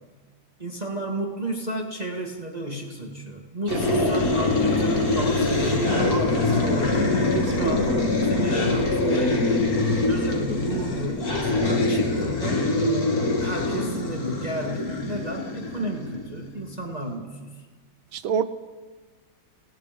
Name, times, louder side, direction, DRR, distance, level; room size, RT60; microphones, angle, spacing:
voice 1, 0.6-7.9 8.2-12.6 13.4-17.6, right 1 dB, 20° right, 1 dB, 2.0 m, -32 dB
sound 1, 3.7-16.6, left 2 dB, 45° left, 2.7 m, -24 dB
voice 2, 3.7-4.1 7.6-7.7 18.1-18.4, right 9 dB, 80° right, 10 dB, 1.7 m, -26 dB
29.0 x 18.0 x 5.2 m, 1.4 s
omnidirectional pair, 2.2 m